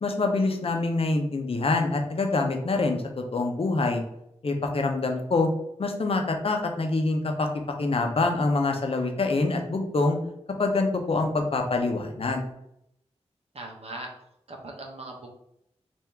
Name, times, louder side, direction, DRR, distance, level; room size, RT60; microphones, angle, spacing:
voice 1, 0.0-4.0 4.4-5.5 5.8-7.5 7.8-10.2 10.6-12.4, left 3 dB, 55° left, 3 dB, 0.8 m, -25 dB
voice 2, 13.5-14.1 14.5-15.5, right 2 dB, 60° right, 1 dB, 0.9 m, -40 dB
3.5 x 2.6 x 4.5 m, 0.77 s
cardioid pair, 65°, 12 cm